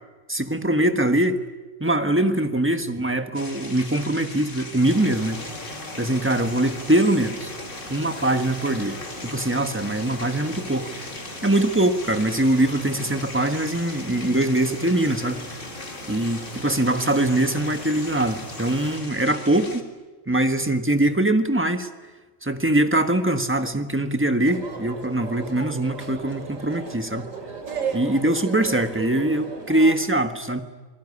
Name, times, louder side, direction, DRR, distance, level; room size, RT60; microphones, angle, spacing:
voice 1, 0.3-1.4 1.8-5.4 6.0-7.5 7.9-15.4 16.1-19.9 20.3-21.9 22.4-27.3 27.9-30.6, right 1 dB, 10° right, 7 dB, 1.4 m, -22 dB
sound 1, 3.3-19.8, left 2 dB, 40° left, 2.3 m, -39 dB
sound 2, 4.8-19.0, left 1 dB, 85° left, 6.1 m, -40 dB
sound 3, 24.5-30.0, right 5 dB, 70° right, 2.6 m, -34 dB
27.5 x 19.0 x 9.8 m, 1.3 s
omnidirectional pair, 1.4 m